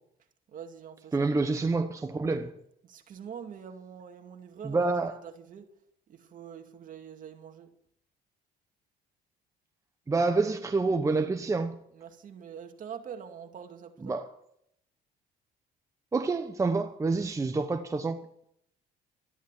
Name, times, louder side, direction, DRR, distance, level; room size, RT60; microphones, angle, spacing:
voice 1, 0.5-1.3 2.8-4.9 5.2-5.7 6.1-7.7 11.9-14.1, right 7 dB, 50° right, 2.3 m, -44 dB
voice 2, 1.1-2.5 4.6-5.2 10.1-11.8 14.0-14.3 16.1-18.2, right 3 dB, 20° right, 1.0 m, -27 dB
13.5 x 11.0 x 7.4 m
cardioid pair, 110°, 17 cm